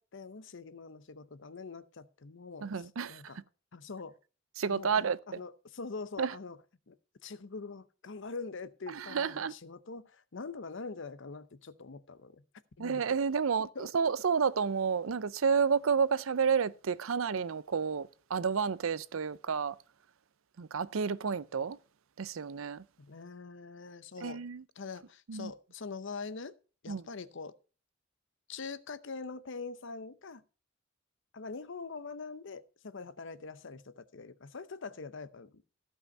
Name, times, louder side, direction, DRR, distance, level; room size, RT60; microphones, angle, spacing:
voice 1, 0.0-3.4 3.7-4.2 4.7-6.6 6.9-7.0 7.2-12.4 12.8-13.1 13.7-13.9 23.0-24.4 24.8-26.5 26.8-27.5 28.5-30.4 31.3-35.6, left 4 dB, 65° left, 0.8 m, -44 dB
voice 2, 2.6-3.4 4.6-5.2 6.2-6.3 8.9-9.5 12.8-19.8 20.6-21.8 22.2-22.8 24.2-24.6 25.3-25.5 26.9-27.0, right 6 dB, 85° right, 0.6 m, -30 dB
15.0 x 5.7 x 5.3 m
head